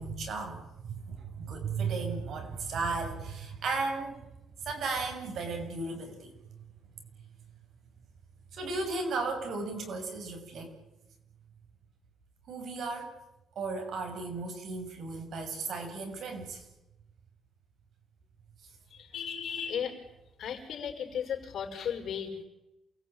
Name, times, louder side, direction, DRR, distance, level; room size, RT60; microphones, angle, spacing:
voice 1, 0.0-4.2 4.6-6.3 8.5-10.7 12.5-13.1 13.6-16.6, right 4 dB, 55° right, 5 dB, 7.1 m, -35 dB
voice 2, 18.9-20.0 20.4-22.4, left 8 dB, 55° left, 3 dB, 5.9 m, -35 dB
28.5 x 21.5 x 9.0 m, 0.93 s
cardioid pair, 175°, 0 cm